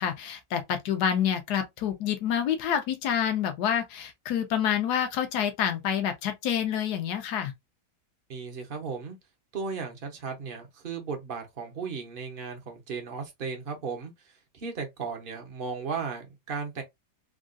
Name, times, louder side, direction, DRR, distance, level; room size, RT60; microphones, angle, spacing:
voice 1, 0.0-7.5, left 9 dB, 75° left, 1.2 m, -28 dB
voice 2, 8.3-9.2 9.5-14.1 14.5-16.8, right 5 dB, 45° right, 0.7 m, -35 dB
3.6 x 2.3 x 2.4 m
omnidirectional pair, 1.8 m